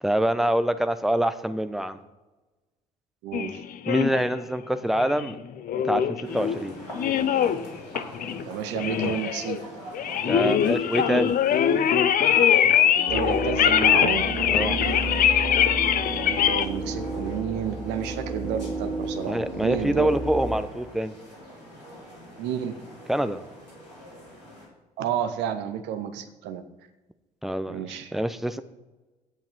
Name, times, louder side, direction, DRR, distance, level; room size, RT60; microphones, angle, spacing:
voice 1, 0.0-2.0 3.9-5.3 5.9-6.1 6.3-6.7 10.2-11.3 14.5-14.7 19.3-21.1 23.1-23.4 27.4-28.6, right 1 dB, ahead, 10 dB, 0.8 m, -25 dB
voice 2, 3.2-3.6 8.5-9.6 13.0-14.3 16.1-20.1 22.4-22.8 25.0-26.6 27.7-28.1, right 9 dB, 60° right, 8 dB, 1.1 m, -31 dB
sound 1, 3.3-4.2 5.0-6.6 6.9-7.7 8.0-8.5 8.7-9.6 9.9-16.7, left 9 dB, 45° left, 0.7 m, -22 dB
sound 2, 6.2-24.7, equal, 80° left, 3.2 m, -44 dB
sound 3, 13.1-20.6, right 2 dB, 90° right, 2.7 m, -31 dB
16.0 x 5.9 x 4.4 m, 1.2 s
figure-of-eight pair, 50°, 21 cm